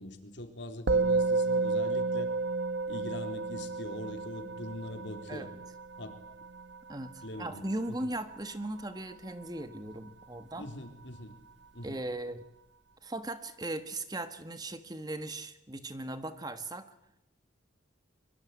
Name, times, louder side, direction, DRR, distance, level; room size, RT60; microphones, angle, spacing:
voice 1, 0.0-2.3 2.9-5.5 6.0-6.1 7.2-8.0 10.6-11.3 11.7-12.0, left 1 dB, 70° left, 6 dB, 4.0 m, -42 dB
Musical instrument, 0.9-10.4, right 3 dB, 65° right, 1.2 m, -32 dB
voice 2, 6.9-10.7 11.8-12.4 13.0-16.9, right 1 dB, 20° right, 10 dB, 1.6 m, -38 dB
24.5 x 24.0 x 9.5 m, 0.80 s
head